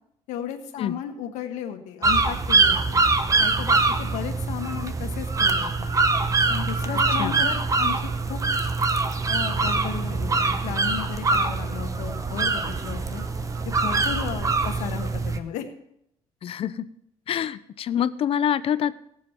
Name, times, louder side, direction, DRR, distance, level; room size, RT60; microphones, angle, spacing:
voice 1, 0.3-3.0 3.4-5.9 6.5-8.4 9.3-13.2 13.6-15.6, left 9 dB, 90° left, 5 dB, 1.4 m, -34 dB
sound 1, 2.0-15.4, right 3 dB, 30° right, 0.9 m, -23 dB
voice 2, 6.9-7.4 16.4-16.8 17.3-18.9, left 9 dB, 50° left, 14 dB, 0.6 m, -26 dB
18.0 x 7.4 x 4.4 m, 0.75 s
cardioid pair, 110°, 12 cm